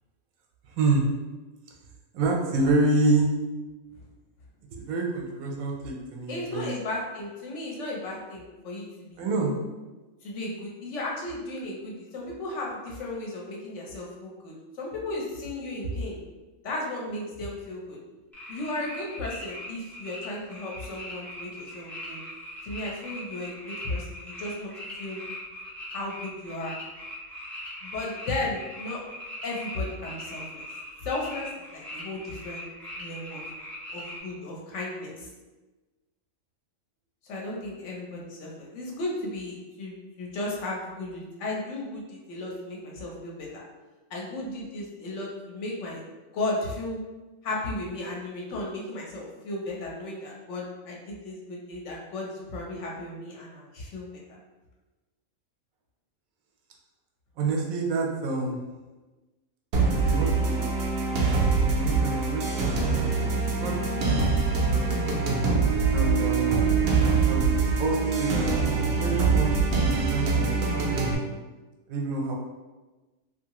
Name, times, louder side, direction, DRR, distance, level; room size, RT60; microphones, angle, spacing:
voice 1, 0.8-1.1 2.1-3.3 4.7-6.7 9.2-9.5 57.4-58.6 60.0-60.6 61.5-63.3 63.6-63.8 64.1-65.0 65.9-66.6 67.3-67.5 67.8-68.5 69.0-69.6 69.9-71.0 71.9-72.4, right 2 dB, 80° right, 0 dB, 1.0 m, -28 dB
voice 2, 6.3-8.8 9.1-9.3 10.2-16.2 16.6-18.0 18.5-22.2 22.6-24.7 25.0-25.2 25.9-26.7 27.8-29.0 29.4-30.6 31.0-32.7 33.0-33.4 33.9-35.3 37.3-43.5 44.1-46.0 46.3-47.0 47.4-54.1 61.8-62.0, left 2 dB, 65° left, -3 dB, 0.9 m, -35 dB
sound 1, 18.3-34.2, left 1 dB, 5° left, 0.3 m, -40 dB
sound 2, 59.7-71.1, right 4 dB, 65° right, 0.6 m, -24 dB
2.7 x 2.4 x 2.9 m, 1.2 s
omnidirectional pair, 1.5 m